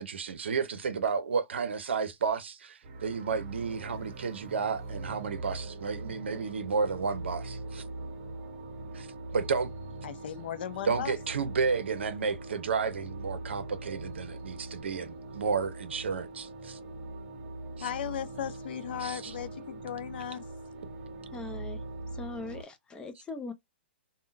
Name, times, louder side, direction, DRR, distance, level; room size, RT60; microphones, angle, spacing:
voice 1, 0.0-7.8 8.9-9.1 9.3-9.7 10.8-16.8 17.8-17.9 19.0-19.3, right 5 dB, 75° right, 0.6 m, -32 dB
sound 1, 2.8-22.6, right 2 dB, 40° right, 0.8 m, -42 dB
voice 2, 10.0-11.1 17.8-20.4, left 10 dB, 60° left, 0.5 m, -36 dB
voice 3, 21.3-21.8 22.1-23.5, left 3 dB, 15° left, 0.6 m, -40 dB
3.6 x 2.1 x 2.6 m
hypercardioid pair, 120°, 6 cm